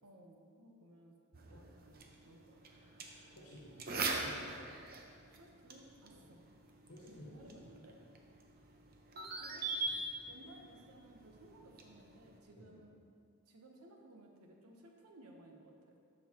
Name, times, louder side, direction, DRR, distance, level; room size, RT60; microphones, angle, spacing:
voice 1, 0.0-1.2 1.5-2.9 5.4-6.4 7.0-8.0 9.1-13.0 13.5-15.7, right 1 dB, 85° right, 1 dB, 1.0 m, -59 dB
sound 1, 1.3-12.4, right 3 dB, 45° right, 0.7 m, -44 dB
voice 2, 3.3-4.7 6.1-6.2 6.9-7.7 9.9-10.0 12.5-12.7, equal, 75° left, -6 dB, 1.5 m, -52 dB
12.5 x 5.5 x 3.0 m, 2.3 s
head